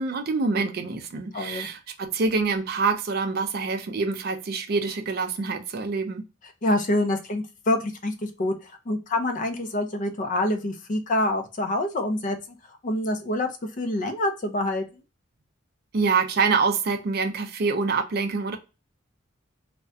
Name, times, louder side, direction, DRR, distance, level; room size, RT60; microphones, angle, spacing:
voice 1, 0.0-6.2 15.9-18.6, right 4 dB, 50° right, 7 dB, 0.4 m, -26 dB
voice 2, 1.3-1.7 6.6-12.4 12.8-13.5 13.8-14.8, left 1 dB, 40° left, 6 dB, 0.4 m, -26 dB
2.4 x 2.1 x 2.5 m, 0.30 s
head